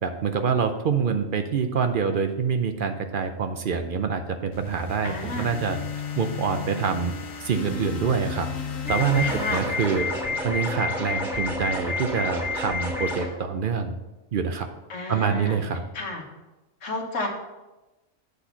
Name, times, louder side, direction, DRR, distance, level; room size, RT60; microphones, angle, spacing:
voice 1, 0.0-5.8 6.2-7.1 7.4-8.5 8.9-10.1 10.4-13.9 14.3-14.7 15.1-15.8, right 6 dB, 55° right, 7 dB, 0.6 m, -26 dB
sound 1, 4.5-10.7, left 6 dB, 90° left, 1.4 m, -35 dB
voice 2, 5.0-5.5 9.2-9.6 14.9-15.6 15.9-16.2 16.8-17.3, left 2 dB, 75° left, 1 dB, 1.6 m, -31 dB
sound 2, 8.9-13.3, left 3 dB, ahead, 1.5 m, -29 dB
8.2 x 4.2 x 5.7 m, 1.1 s
omnidirectional pair, 1.3 m